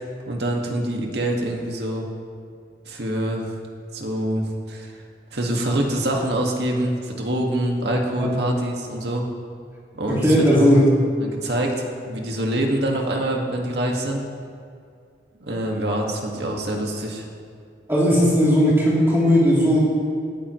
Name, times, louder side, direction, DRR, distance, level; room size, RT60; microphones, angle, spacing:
voice 1, 0.3-2.1 2.9-3.5 3.9-4.9 5.3-9.3 9.9-10.7 11.2-14.2 15.4-17.2, right 1 dB, 70° right, 0 dB, 1.9 m, -25 dB
voice 2, 8.2-8.5 10.1-10.9 17.9-19.9, equal, 15° right, -8 dB, 3.2 m, -17 dB
18.5 x 14.0 x 3.2 m, 2.3 s
head